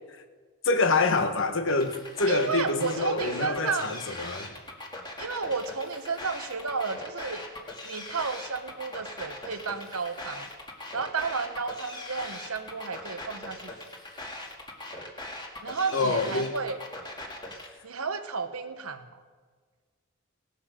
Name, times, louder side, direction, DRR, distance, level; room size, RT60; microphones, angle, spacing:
voice 1, 0.6-4.5 15.9-16.5, left 3 dB, 60° left, 1.2 m, -26 dB
sound 1, 1.7-17.7, left 2 dB, 20° left, 1.8 m, -40 dB
voice 2, 2.3-4.0 5.2-7.5 7.8-10.5 10.9-13.7 15.6-16.8 17.8-19.1, right 4 dB, 90° right, 1.1 m, -32 dB
17.5 x 13.0 x 5.1 m
head